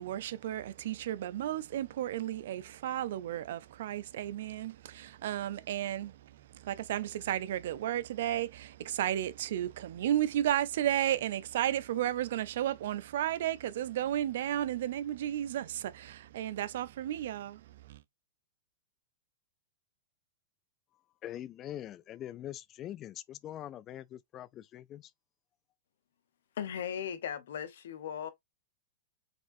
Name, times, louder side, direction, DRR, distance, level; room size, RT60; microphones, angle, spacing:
voice 1, 0.0-18.0, right 12 dB, 70° right, 0.5 m, -33 dB
voice 2, 21.2-25.1, left 12 dB, 30° left, 0.3 m, -43 dB
voice 3, 26.6-28.3, left 9 dB, 75° left, 0.8 m, -37 dB
4.2 x 3.5 x 2.6 m
hypercardioid pair, 135°, 0 cm